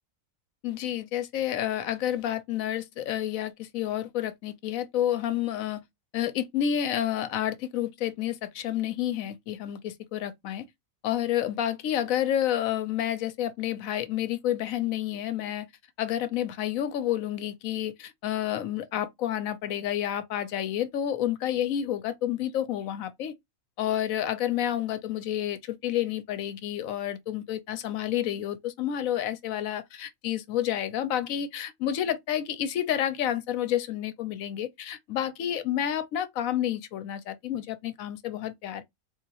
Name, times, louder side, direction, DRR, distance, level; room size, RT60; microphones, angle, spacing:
voice 1, 0.6-5.8 6.1-10.7 11.0-15.7 16.0-23.3 23.8-38.8, left 11 dB, 80° left, 1.1 m, -29 dB
4.0 x 2.8 x 2.8 m
omnidirectional pair, 1.4 m